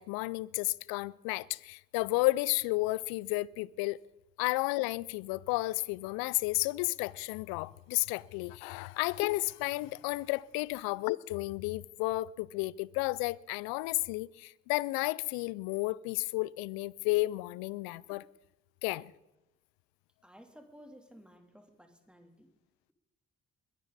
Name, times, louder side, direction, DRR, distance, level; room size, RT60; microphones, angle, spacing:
voice 1, 0.0-4.0 4.4-18.2 18.8-19.1, left 21 dB, 80° left, 0.5 m, -32 dB
voice 2, 20.2-22.5, equal, 5° right, 3.3 m, -55 dB
21.5 x 11.0 x 4.1 m
hypercardioid pair, 40°, 36 cm